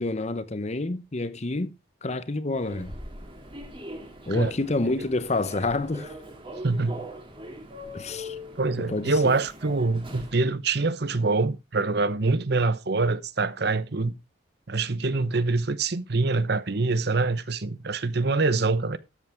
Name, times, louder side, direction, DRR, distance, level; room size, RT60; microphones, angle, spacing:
voice 1, 0.0-1.7 2.0-2.9 4.3-6.1 7.9-8.4 8.8-9.3, left 2 dB, 40° left, 0.9 m, -28 dB
Human voice / Subway metro underground, 2.5-10.5, equal, 30° right, 2.4 m, -41 dB
voice 2, 6.6-7.1 8.6-14.1 14.7-19.0, right 3 dB, 60° right, 0.9 m, -25 dB
13.0 x 8.1 x 3.5 m
head